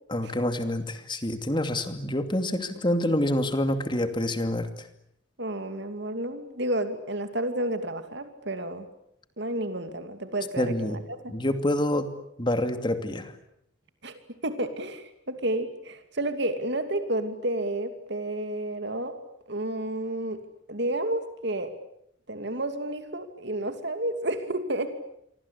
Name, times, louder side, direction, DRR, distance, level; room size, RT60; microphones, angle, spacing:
voice 1, 0.1-4.9 10.6-11.0 11.3-12.1 12.4-13.3, left 1 dB, 25° left, 8 dB, 2.6 m, -27 dB
voice 2, 5.4-8.9 9.4-11.3 14.0-19.2 19.5-20.4 20.7-21.7 22.3-24.9, right 1 dB, 60° right, 8 dB, 2.7 m, -31 dB
28.5 x 24.5 x 8.5 m, 0.74 s
head